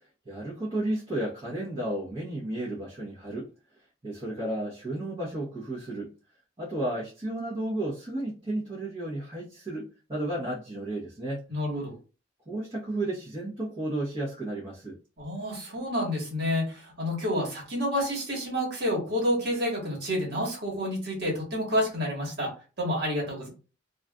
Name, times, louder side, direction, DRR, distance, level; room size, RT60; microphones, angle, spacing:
voice 1, 0.2-3.5 4.0-6.1 6.6-11.4 12.5-15.0, right 1 dB, 25° right, 0.9 m, -33 dB
voice 2, 11.5-11.9 15.2-22.5 22.8-23.5, equal, 55° right, 1.5 m, -29 dB
3.1 x 2.5 x 2.3 m
head